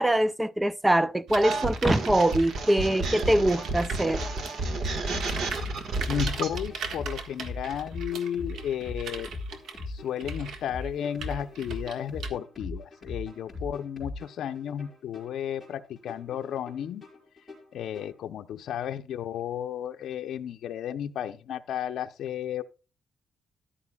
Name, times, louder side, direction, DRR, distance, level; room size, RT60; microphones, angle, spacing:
voice 1, 0.0-4.2, right 1 dB, 10° right, 0.4 m, -23 dB
sound 1, 1.3-4.7 5.1-12.3, right 4 dB, 80° right, 1.6 m, -39 dB
sound 2, 1.4-6.6, right 3 dB, 60° right, 1.6 m, -31 dB
sound 3, 3.2-18.2, left 2 dB, 10° left, 4.8 m, -40 dB
voice 2, 6.1-9.3 9.9-17.0 17.7-22.6, left 9 dB, 75° left, 0.6 m, -33 dB
14.0 x 11.5 x 2.3 m
wide cardioid pair, 165°, 0 cm